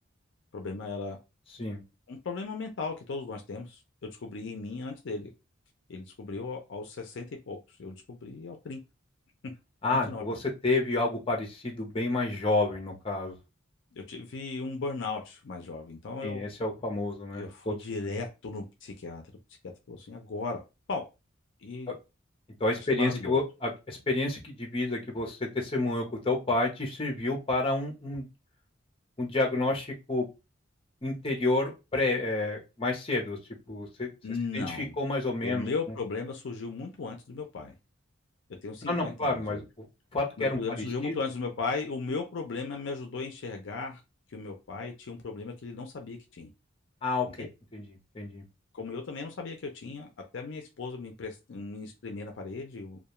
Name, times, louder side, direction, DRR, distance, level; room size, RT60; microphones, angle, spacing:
voice 1, 0.5-1.2 2.1-5.3 5.9-8.8 9.9-10.3 13.9-16.4 17.4-19.2 19.6-20.6 20.9-21.0 21.6-22.0 22.9-23.4 34.2-35.0 35.4-37.7 38.6-39.6 40.4-44.0 44.3-46.5 47.4-47.5 48.7-53.0, left 4 dB, 65° left, 0.5 m, -36 dB
voice 2, 9.8-13.4 16.2-17.8 21.9-22.0 22.6-28.3 29.2-30.3 31.0-33.4 33.7-34.1 34.5-35.7 38.9-39.6 40.1-41.1 47.0-47.5 47.7-48.4, left 2 dB, 30° left, 0.7 m, -29 dB
2.3 x 2.2 x 2.9 m
head